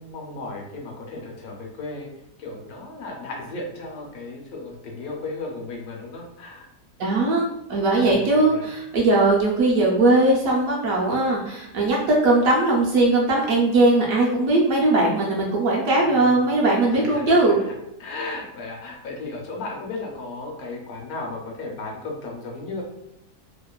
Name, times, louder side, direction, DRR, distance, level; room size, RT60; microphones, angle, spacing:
voice 1, 0.0-2.1 2.4-6.7 8.0-8.7 15.9-16.5 16.9-17.7 18.0-22.8, left 3 dB, 70° left, 0 dB, 1.0 m, -35 dB
voice 2, 7.0-17.6, right 2 dB, 70° right, -3 dB, 0.9 m, -19 dB
2.9 x 2.0 x 2.2 m, 0.82 s
omnidirectional pair, 1.7 m